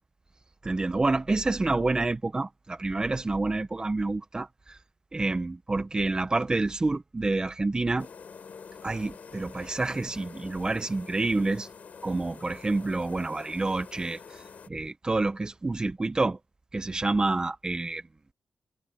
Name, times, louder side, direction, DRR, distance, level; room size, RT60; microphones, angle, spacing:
voice 1, 0.6-4.5 5.1-8.1 8.8-11.7 12.0-14.2 14.7-16.4 16.7-18.0, right 2 dB, 30° right, 1.4 m, -28 dB
sound 1, 8.0-14.7, left 6 dB, 65° left, 6.0 m, -47 dB
cardioid pair, 75°, 3 cm